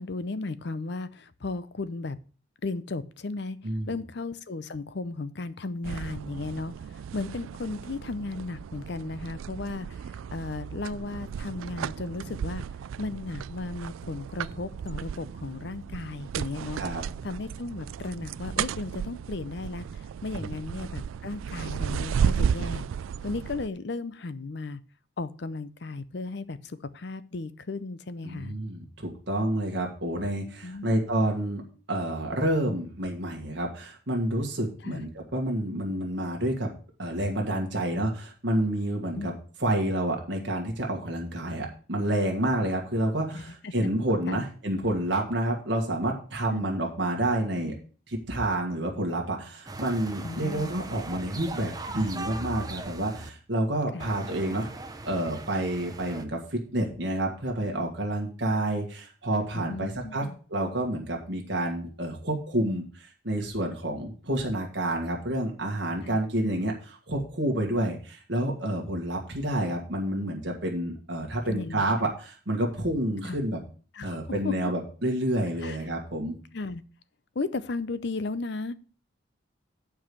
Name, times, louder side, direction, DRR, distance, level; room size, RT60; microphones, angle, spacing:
voice 1, 0.0-2.2 2.6-3.6 3.9-12.6 13.0-16.8 17.2-22.9 23.2-24.8 25.2-28.5 30.6-30.9 34.8-35.0 39.1-39.3 43.3-43.9 44.3-44.4 46.5-46.7 50.2-50.7 53.9-54.1 59.5-60.4 66.0-66.2 71.4-71.9 73.3-73.4 73.9-74.7 75.6-75.8 76.5-76.8 77.3-78.8, left 3 dB, 55° left, 15 dB, 0.6 m, -35 dB
sound 1, 5.8-23.7, right 7 dB, 80° right, 0.3 m, -34 dB
voice 2, 28.2-31.6 31.9-36.7 37.0-39.3 39.6-47.7 48.1-54.7 55.0-60.2 60.5-73.6 74.0-76.3, right 1 dB, 60° right, 1 dB, 1.7 m, -29 dB
sound 2, 49.7-53.3 54.0-56.2, right 2 dB, 20° right, 0.7 m, -39 dB
8.7 x 4.8 x 6.8 m, 0.39 s
head